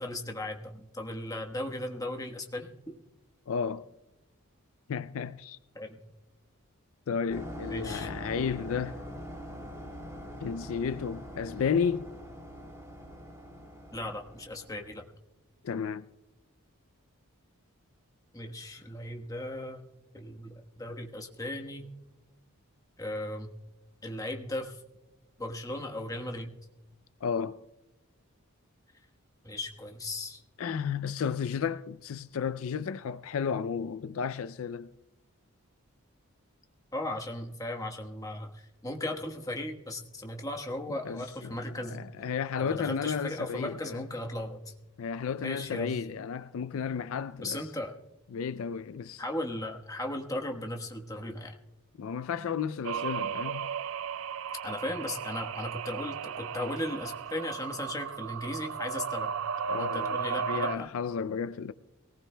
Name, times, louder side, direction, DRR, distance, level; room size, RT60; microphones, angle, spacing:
voice 1, 0.0-3.0 5.7-6.0 7.7-8.1 13.9-15.0 18.3-19.8 20.1-21.9 23.0-23.5 24.0-24.8 25.4-26.5 29.4-30.4 36.9-42.0 42.6-44.7 45.4-46.0 47.4-47.9 49.2-51.5 54.6-59.3 59.7-60.9, left 1 dB, 15° left, 1.2 m, -37 dB
voice 2, 3.5-3.9 4.9-5.6 7.1-9.0 10.4-12.1 15.6-16.1 27.2-27.6 30.6-34.9 41.0-44.0 45.0-47.7 48.3-49.2 52.0-53.7 59.7-60.2 60.5-61.7, left 6 dB, 65° left, 0.4 m, -33 dB
sound 1, 7.3-14.9, equal, 15° right, 2.9 m, -43 dB
sound 2, 52.8-60.8, right 7 dB, 65° right, 0.3 m, -35 dB
23.5 x 18.5 x 2.2 m
head